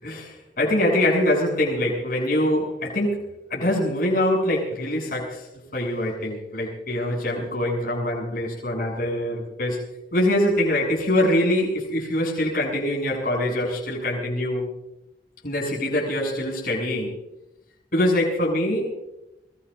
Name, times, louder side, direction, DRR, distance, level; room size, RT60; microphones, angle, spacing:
voice 1, 0.0-9.8 10.1-14.7 15.4-17.1 17.9-19.0, left 1 dB, 50° left, -2 dB, 7.6 m, -24 dB
23.0 x 23.0 x 2.6 m, 0.89 s
head